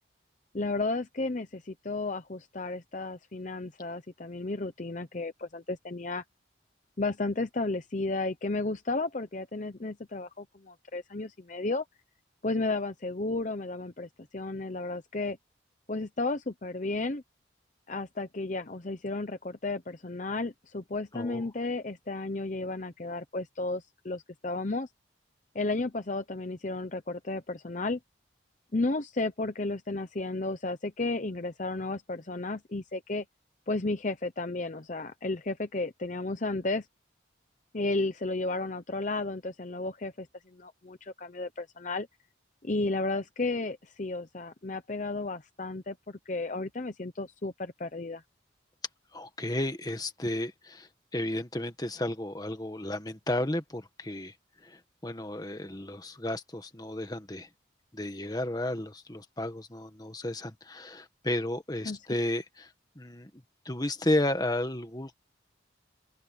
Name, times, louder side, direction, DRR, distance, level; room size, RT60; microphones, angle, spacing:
voice 1, 0.5-6.2 7.0-11.8 12.4-15.4 15.9-17.2 17.9-24.9 25.5-28.0 28.7-33.2 33.7-36.9 37.7-40.3 40.5-42.1 42.6-48.2 61.8-62.0, left 2 dB, 40° left, 0.8 m, -33 dB
voice 2, 49.1-54.3 54.6-57.5 57.9-63.3 63.6-65.1, left 1 dB, 20° left, 1.6 m, -33 dB
open air
head